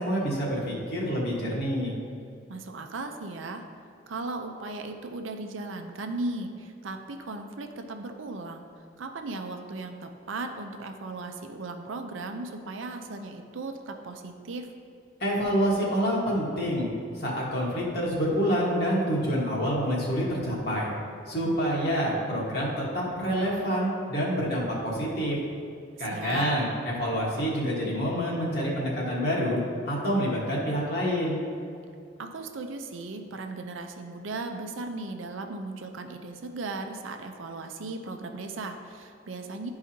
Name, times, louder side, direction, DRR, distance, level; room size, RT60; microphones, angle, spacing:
voice 1, 0.0-1.9 15.2-16.9 17.1-20.9 21.3-25.4 26.0-29.6 29.9-31.4, equal, 55° left, -5 dB, 1.4 m, -27 dB
voice 2, 2.5-3.6 4.1-8.6 9.0-14.7 26.0-26.5 32.2-39.7, right 3 dB, 80° right, 5 dB, 0.6 m, -37 dB
11.0 x 4.8 x 2.8 m, 2.5 s
head